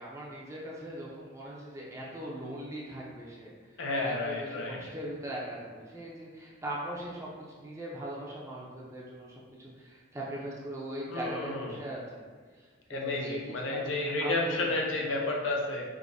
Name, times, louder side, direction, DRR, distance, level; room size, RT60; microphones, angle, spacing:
voice 1, 0.0-3.5 4.0-7.3 7.6-12.2 12.6-14.8, right 1 dB, 15° right, -5 dB, 0.7 m, -40 dB
voice 2, 3.8-4.8 11.1-11.8 12.9-15.9, left 2 dB, 85° left, -1 dB, 0.7 m, -31 dB
4.8 x 2.8 x 2.7 m, 1.5 s
head